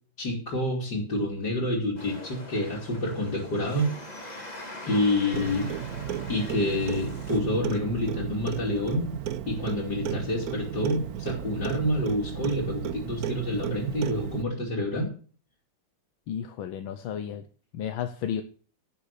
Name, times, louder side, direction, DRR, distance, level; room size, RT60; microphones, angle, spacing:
voice 1, 0.2-4.5 4.9-5.7 6.3-9.2 9.5-15.1, left 1 dB, 55° left, -3 dB, 3.2 m, -28 dB
sound 1, 2.0-7.4, left 1 dB, 20° left, 2.6 m, -42 dB
Clock, 5.3-14.4, right 10 dB, 60° right, 1.0 m, -34 dB
voice 2, 16.3-17.4 17.7-18.4, left 9 dB, 85° left, 8 dB, 1.7 m, -32 dB
11.0 x 8.5 x 6.6 m, 0.41 s
omnidirectional pair, 2.2 m